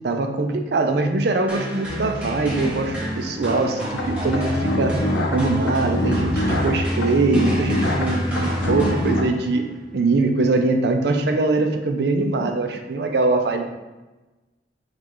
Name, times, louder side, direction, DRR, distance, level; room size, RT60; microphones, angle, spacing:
voice 1, 0.0-3.8 4.1-5.0 5.3-9.6 9.9-13.6, right 3 dB, 65° right, 5 dB, 0.5 m, -22 dB
sound 1, 1.5-9.6, equal, 5° right, 1.0 m, -30 dB
sound 2, 4.0-9.2, left 1 dB, 90° left, 0.6 m, -24 dB
4.9 x 2.4 x 3.8 m, 1.1 s
head